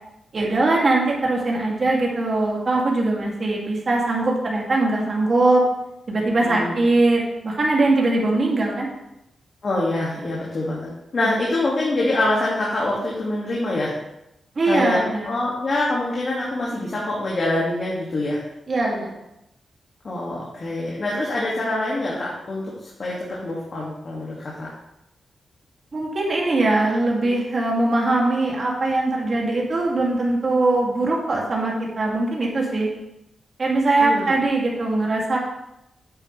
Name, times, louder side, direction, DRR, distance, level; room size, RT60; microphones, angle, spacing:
voice 1, 0.3-5.6 6.1-8.9 14.6-15.3 18.7-19.1 25.9-32.9 33.6-35.4, right 2 dB, 45° right, -2 dB, 2.7 m, -21 dB
voice 2, 6.4-6.8 9.6-13.9 14.6-15.0 15.3-18.4 20.0-24.7 34.0-34.3, left 2 dB, 50° left, -5 dB, 2.3 m, -25 dB
9.3 x 7.8 x 3.4 m, 0.88 s
cardioid pair, 90°, 0 cm